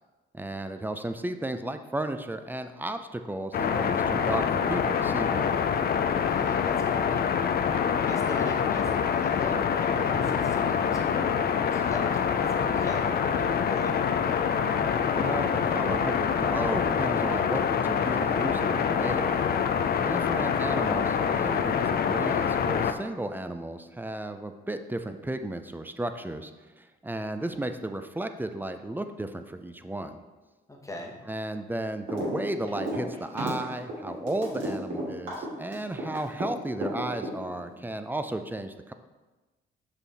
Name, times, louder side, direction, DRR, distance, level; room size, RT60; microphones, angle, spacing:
voice 1, 0.3-5.5 14.9-19.5 20.0-26.5 26.8-30.2 31.3-38.9, right 1 dB, 10° right, 8 dB, 0.5 m, -34 dB
sound 1, 3.5-22.9, left 7 dB, 50° left, 0.5 m, -26 dB
voice 2, 6.3-7.2 8.0-14.0 30.7-31.2, left 1 dB, 15° left, 0 dB, 1.2 m, -40 dB
sound 2, 32.1-32.4 32.6-36.5 36.8-37.7, right 1 dB, 75° right, 2.5 m, -32 dB
6.1 x 5.8 x 4.1 m, 1.2 s
cardioid pair, 90°, 20 cm